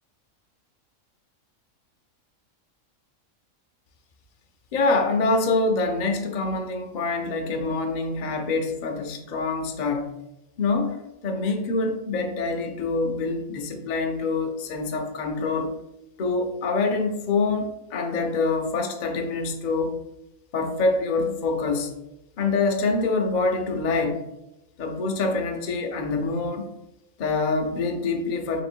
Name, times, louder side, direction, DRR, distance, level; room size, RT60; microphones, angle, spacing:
voice 1, 4.7-10.1 10.6-15.7 16.2-20.0 20.5-21.9 22.4-24.2 24.8-26.7 27.2-28.6, left 3 dB, 60° left, 3 dB, 0.5 m, -25 dB
3.2 x 2.9 x 4.4 m, 0.90 s
omnidirectional pair, 1.5 m